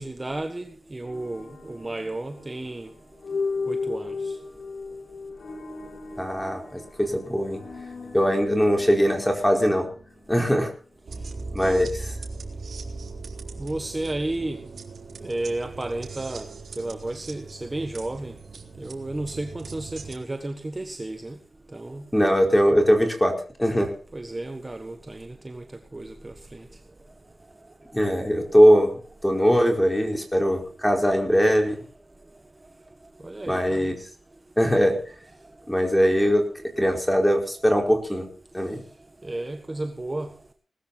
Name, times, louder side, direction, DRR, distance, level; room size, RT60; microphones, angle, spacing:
voice 1, 0.0-2.9 3.7-4.4 11.6-11.8 13.6-14.7 15.2-18.4 18.8-21.4 21.7-22.1 24.1-25.6 25.9-26.7 33.2-33.9 35.4-35.5 39.2-40.4, right 2 dB, 20° right, 1.5 m, -33 dB
sound 1, 1.0-11.1, left 4 dB, 85° left, 5.9 m, -36 dB
voice 2, 6.2-7.6 8.1-9.9 10.3-10.7 11.5-12.2 22.1-23.3 23.6-23.9 27.9-28.9 29.2-31.8 33.5-34.0 34.6-35.0 35.7-36.4 36.8-38.3 38.5-38.8, equal, 5° left, 4.6 m, -21 dB
sound 2, 11.1-20.2, right 3 dB, 85° right, 3.6 m, -39 dB
20.0 x 13.5 x 4.1 m
wide cardioid pair, 125°, 0 cm